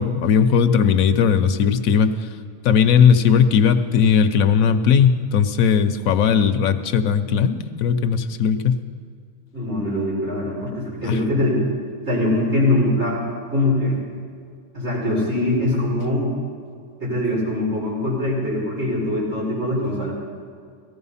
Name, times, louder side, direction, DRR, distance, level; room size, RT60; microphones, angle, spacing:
voice 1, 0.0-2.3 2.6-8.8 11.1-11.2, left 7 dB, 90° left, 10 dB, 1.2 m, -17 dB
voice 2, 9.5-11.6 12.1-13.2 13.5-14.0 14.7-16.3 17.0-20.1, left 1 dB, 55° right, -6 dB, 5.7 m, -22 dB
17.5 x 14.5 x 5.6 m, 2.2 s
omnidirectional pair, 1.4 m